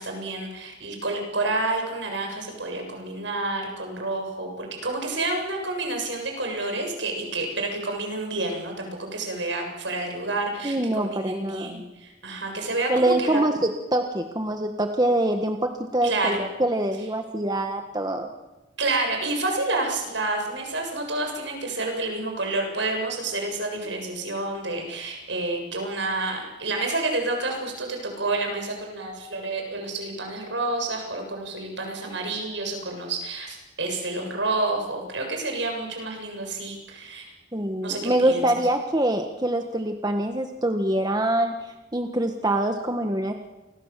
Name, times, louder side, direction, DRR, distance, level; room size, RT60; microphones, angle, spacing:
voice 1, 0.0-13.4 16.0-16.4 18.8-37.3 37.8-38.5, right 2 dB, 70° right, 3 dB, 7.6 m, -29 dB
voice 2, 10.6-11.8 12.9-18.3 37.5-43.3, right 1 dB, 20° right, 5 dB, 1.5 m, -25 dB
29.5 x 23.5 x 7.6 m, 1.1 s
head